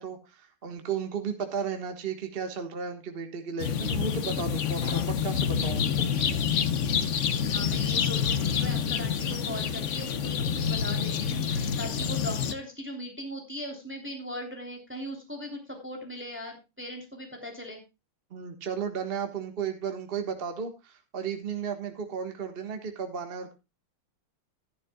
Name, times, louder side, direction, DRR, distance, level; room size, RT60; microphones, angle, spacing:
voice 1, 0.0-5.9 18.3-23.5, right 6 dB, 30° right, 5 dB, 1.4 m, -34 dB
sound 1, 3.6-12.5, left 7 dB, 65° left, 0.7 m, -27 dB
voice 2, 7.4-17.8, equal, 5° right, 2 dB, 2.9 m, -39 dB
14.5 x 11.0 x 2.3 m, 0.26 s
omnidirectional pair, 2.3 m